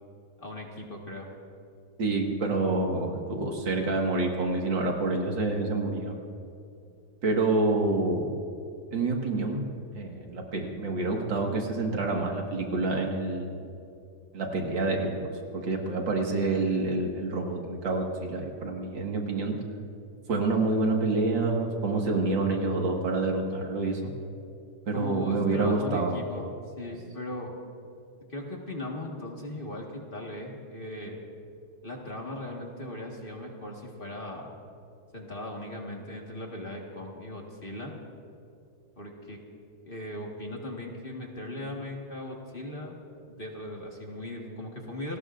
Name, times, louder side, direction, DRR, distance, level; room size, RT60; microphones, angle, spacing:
voice 1, 0.4-1.3 24.9-26.5 26.8-27.5 28.3-31.2 31.8-34.5 35.1-37.9 39.0-39.4 39.8-42.9 43.3-45.2, left 1 dB, 30° left, -1 dB, 1.7 m, -38 dB
voice 2, 2.0-6.2 7.2-8.3 8.9-9.6 10.0-13.7 14.3-15.3 15.5-19.6 20.3-24.0 24.9-26.2, right 3 dB, 80° right, 1 dB, 2.6 m, -27 dB
28.0 x 19.0 x 2.6 m, 2.5 s
omnidirectional pair, 2.0 m